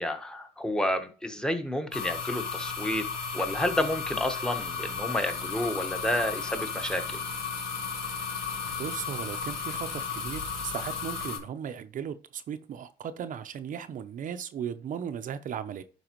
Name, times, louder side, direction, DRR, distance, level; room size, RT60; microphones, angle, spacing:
voice 1, 0.0-3.1 3.3-7.2, left 1 dB, 5° left, 1.3 m, -30 dB
sound 1, 1.9-11.4, left 6 dB, 55° left, 3.9 m, -34 dB
voice 2, 8.8-15.8, right 8 dB, 50° right, 0.7 m, -36 dB
11.5 x 4.8 x 3.1 m
cardioid pair, 110°, 17 cm